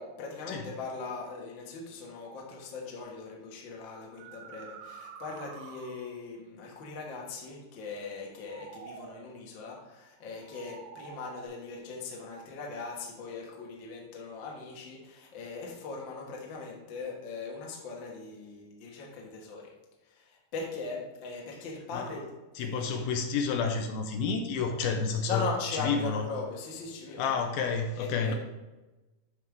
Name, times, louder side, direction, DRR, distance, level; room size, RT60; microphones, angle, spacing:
voice 1, 0.0-19.6 20.1-22.2 22.6-22.9 25.3-27.4 28.0-28.3, left 4 dB, 60° left, -1 dB, 1.3 m, -40 dB
sound 1, 3.0-3.2 4.0-6.3 8.2-9.4 10.3-11.5, right 7 dB, 85° right, 2.0 m, -48 dB
voice 2, 22.6-25.4 25.7-26.3 27.2-28.3, left 5 dB, 80° left, 4 dB, 2.4 m, -30 dB
11.5 x 4.7 x 3.7 m, 1.1 s
omnidirectional pair, 4.6 m